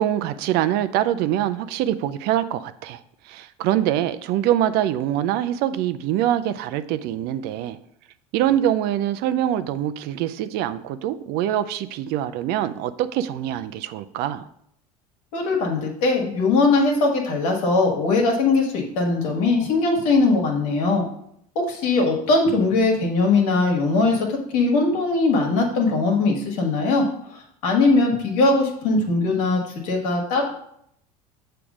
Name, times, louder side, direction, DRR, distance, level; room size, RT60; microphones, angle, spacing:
voice 1, 0.0-3.0 3.3-7.8 8.3-14.4, right 11 dB, 60° right, 12 dB, 0.5 m, -24 dB
voice 2, 15.3-21.0 21.5-27.0 27.3-30.5, left 3 dB, 70° left, 0 dB, 1.7 m, -20 dB
7.0 x 3.3 x 5.0 m, 0.70 s
hypercardioid pair, 85°, 19 cm